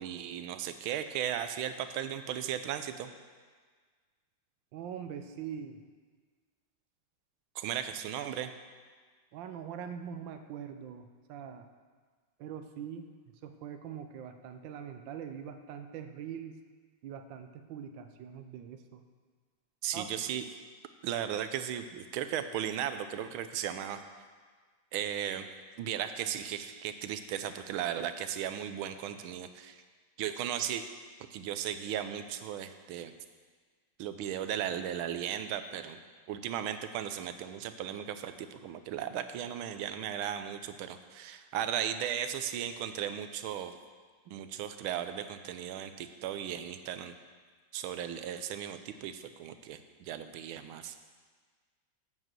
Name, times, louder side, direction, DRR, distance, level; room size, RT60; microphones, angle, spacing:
voice 1, 0.0-3.1 7.6-8.5 19.8-20.4 21.0-24.0 24.9-25.5 25.8-29.8 30.2-30.8 31.3-33.1 34.0-36.0 36.3-43.7 44.3-47.1 47.7-50.9, right 10 dB, 85° right, 9 dB, 1.5 m, -36 dB
voice 2, 4.7-5.8 9.3-11.7 12.4-13.1 13.4-16.6 17.0-19.0 19.9-20.1, right 8 dB, 70° right, 7 dB, 1.4 m, -43 dB
8.0 x 7.4 x 7.5 m, 1.5 s
omnidirectional pair, 2.2 m